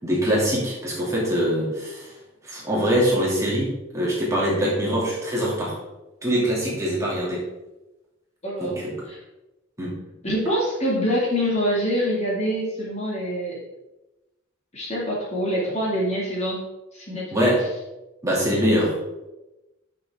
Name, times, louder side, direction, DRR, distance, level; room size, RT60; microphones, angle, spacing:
voice 1, 0.0-2.1 2.4-5.8 6.2-7.4 8.6-8.9 9.8-9.9 17.3-17.6 18.2-19.0, equal, 15° right, -6 dB, 2.7 m, -23 dB
voice 2, 8.4-9.2 10.2-13.6 14.7-16.7 16.9-17.5, equal, 35° left, -5 dB, 2.4 m, -25 dB
10.0 x 6.2 x 3.7 m, 1.0 s
head